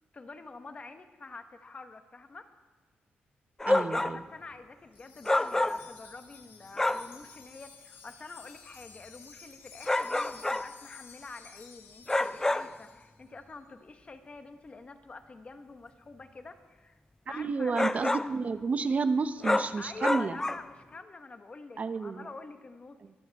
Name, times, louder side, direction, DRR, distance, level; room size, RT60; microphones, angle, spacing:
voice 1, 0.1-2.5 4.1-17.0 17.3-17.8 19.8-23.2, left 3 dB, 30° left, 7 dB, 1.2 m, -47 dB
sound 1, 3.6-4.2 5.3-6.0 6.8-7.1 9.9-10.7 12.1-12.8 17.8-18.4 19.4-20.7, left 2 dB, 10° left, 0.4 m, -28 dB
voice 2, 3.7-4.2 17.3-20.4 21.8-22.3 23.0-23.1, right 4 dB, 40° right, 11 dB, 0.7 m, -31 dB
Wind chime, 4.9-13.1, left 6 dB, 85° left, 1.9 m, -53 dB
23.0 x 13.5 x 3.5 m, 1.3 s
cardioid pair, 110°, 4 cm